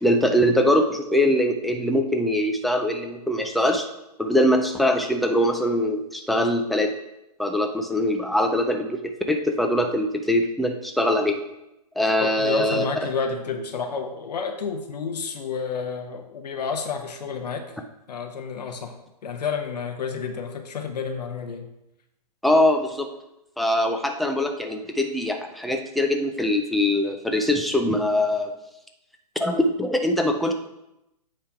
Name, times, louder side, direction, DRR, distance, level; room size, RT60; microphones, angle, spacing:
voice 1, 0.0-3.9 4.2-6.9 7.4-11.4 12.0-12.8 22.4-23.1 23.6-28.5 29.4-30.5, left 1 dB, ahead, 4 dB, 0.3 m, -22 dB
voice 2, 12.2-17.7 18.1-18.9 19.2-21.7, left 5 dB, 75° left, 5 dB, 1.0 m, -30 dB
8.7 x 3.4 x 5.7 m, 0.89 s
hypercardioid pair, 135°, 21 cm